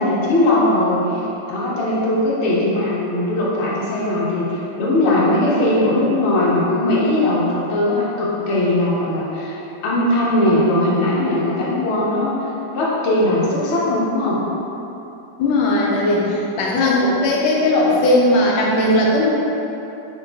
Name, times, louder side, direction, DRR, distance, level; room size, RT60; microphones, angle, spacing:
voice 1, 0.0-12.3 12.7-14.4, left 1 dB, 60° left, -6 dB, 0.7 m, -19 dB
voice 2, 15.4-19.3, left 1 dB, 90° left, -3 dB, 1.4 m, -17 dB
4.0 x 2.2 x 3.8 m, 3.0 s
omnidirectional pair, 2.1 m